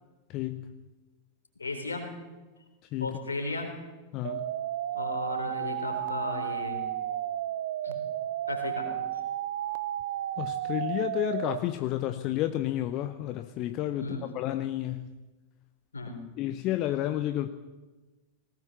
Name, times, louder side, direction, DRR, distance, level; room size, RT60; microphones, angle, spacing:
voice 1, 0.3-0.8 2.9-3.2 4.1-4.5 10.4-15.2 16.4-17.5, left 13 dB, 40° left, 10 dB, 0.9 m, -31 dB
voice 2, 1.6-2.1 3.0-3.7 4.9-6.9 7.8-8.0 8.5-9.2 14.0-14.2 15.9-16.3, left 3 dB, 75° left, 5 dB, 3.9 m, -35 dB
sound 1, 4.2-11.6, right 12 dB, 55° right, 0.7 m, -33 dB
20.0 x 18.0 x 7.2 m, 1.2 s
figure-of-eight pair, 90°, 0 cm